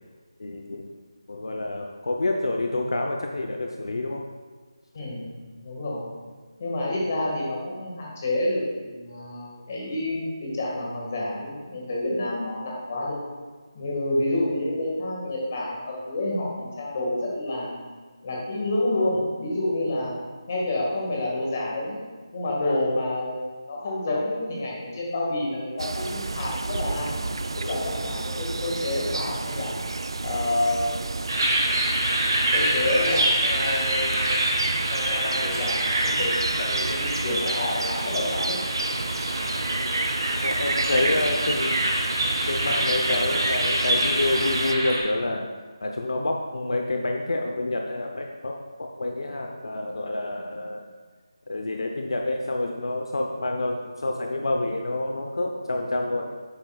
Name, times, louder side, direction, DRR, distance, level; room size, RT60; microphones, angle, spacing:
voice 1, 0.4-0.9 1.3-4.2 40.4-41.8 42.4-45.5 45.8-50.8 51.5-56.3, left 2 dB, 65° left, 2 dB, 0.7 m, -28 dB
voice 2, 4.9-5.3 5.6-6.0 6.6-13.1 13.7-17.8 18.2-20.1 20.5-22.0 22.3-27.3 27.6-29.8 30.2-31.1 32.5-34.3 34.9-38.4, left 1 dB, 25° left, -4 dB, 1.8 m, -28 dB
sound 1, 25.8-44.7, right 3 dB, 65° right, 0.4 m, -31 dB
sound 2, 31.3-45.0, right 1 dB, 40° right, 2.1 m, -26 dB
10.5 x 8.7 x 2.4 m, 1.4 s
figure-of-eight pair, 175°, 3 cm